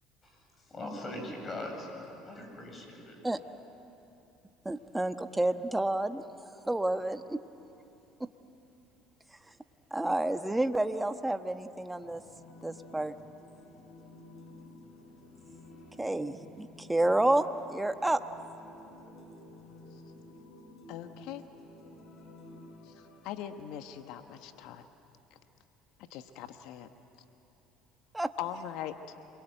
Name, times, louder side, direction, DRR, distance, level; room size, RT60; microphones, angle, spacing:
voice 1, 0.7-3.2, left 1 dB, 30° left, 2 dB, 7.5 m, -40 dB
voice 2, 4.6-7.4 8.2-8.3 9.9-12.2 12.6-13.1 16.0-18.2 28.1-28.3, right 1 dB, 10° right, 8 dB, 1.2 m, -30 dB
sound 1, 12.0-24.6, left 2 dB, 45° left, 6.1 m, -52 dB
voice 3, 20.9-21.4 22.8-24.8 25.3-25.4 26.0-26.9 28.4-29.0, left 10 dB, 70° left, 8 dB, 1.2 m, -41 dB
27.5 x 23.0 x 9.2 m, 2.9 s
supercardioid pair, 85°, 0 cm